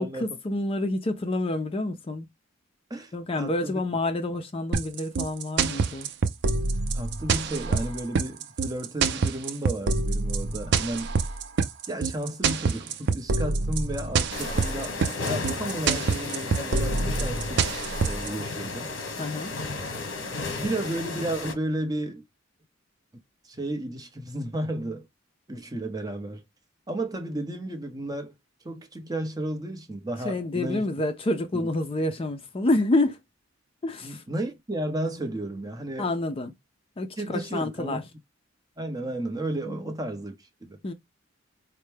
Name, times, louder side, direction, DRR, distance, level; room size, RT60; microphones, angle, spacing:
voice 1, 0.0-2.3 3.1-6.1 19.2-19.5 30.2-33.2 33.8-34.2 36.0-36.5 37.0-38.0 39.7-39.8 40.8-40.9, left 2 dB, 30° left, 0.4 m, -28 dB
voice 2, 2.9-3.8 6.9-11.2 11.9-17.7 18.0-18.9 20.4-22.3 23.4-25.1 25.5-26.4 26.9-28.3 28.6-30.9 31.5-31.7 34.0-36.1 37.2-38.0 38.8-40.8, right 1 dB, 20° right, 0.7 m, -33 dB
sound 1, 4.7-18.3, right 4 dB, 60° right, 0.4 m, -26 dB
sound 2, 14.3-21.5, left 3 dB, 65° left, 1.0 m, -33 dB
4.3 x 2.1 x 3.2 m
head